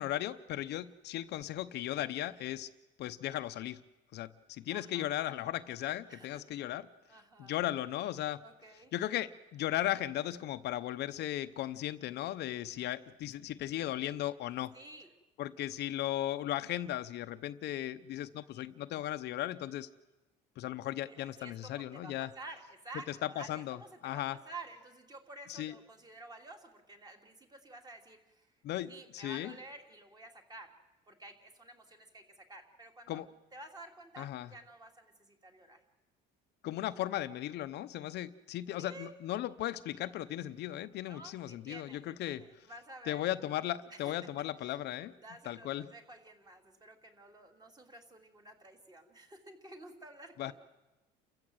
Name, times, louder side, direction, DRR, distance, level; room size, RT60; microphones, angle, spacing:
voice 1, 0.0-2.7 3.0-3.8 4.1-6.9 7.4-8.4 8.9-14.7 15.4-19.9 20.6-22.3 23.1-23.8 24.0-24.4 25.5-25.7 28.6-29.5 33.1-33.3 34.2-34.5 36.6-42.4 43.1-45.1 45.5-45.9 50.4-50.5, left 13 dB, 60° left, 11 dB, 0.8 m, -36 dB
voice 2, 4.7-5.1 6.1-6.3 7.1-7.5 8.4-8.9 14.7-15.1 21.0-28.5 28.9-30.7 31.1-33.2 33.5-35.8 38.8-39.2 41.0-43.3 43.9-44.1 44.6-44.8 45.2-50.5, right 2 dB, 20° right, 4 dB, 2.9 m, -51 dB
29.0 x 15.0 x 7.9 m, 1.1 s
cardioid pair, 120°, 20 cm